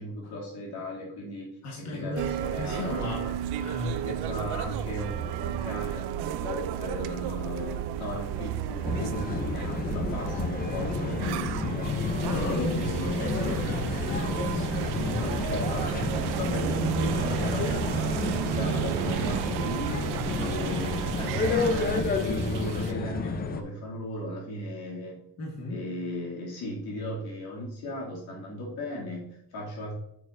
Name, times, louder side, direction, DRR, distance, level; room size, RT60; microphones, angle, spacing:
voice 1, 0.0-1.5 1.8-3.4 4.0-11.9 12.3-13.2 15.0-25.2 25.7-30.0, left 1 dB, 75° left, -3 dB, 2.7 m, -37 dB
voice 2, 1.6-2.3 2.6-3.2 3.6-4.1 12.2-15.3 25.4-25.8, left 2 dB, 45° left, -3 dB, 1.5 m, -35 dB
sound 1, 2.2-22.0, right 10 dB, 85° right, 0.5 m, -32 dB
sound 2, 8.8-23.6, left 4 dB, 25° left, 0.5 m, -31 dB
sound 3, 11.8-22.9, right 5 dB, 55° right, 0.8 m, -40 dB
8.7 x 6.5 x 2.6 m, 0.74 s
cardioid pair, 150°, 38 cm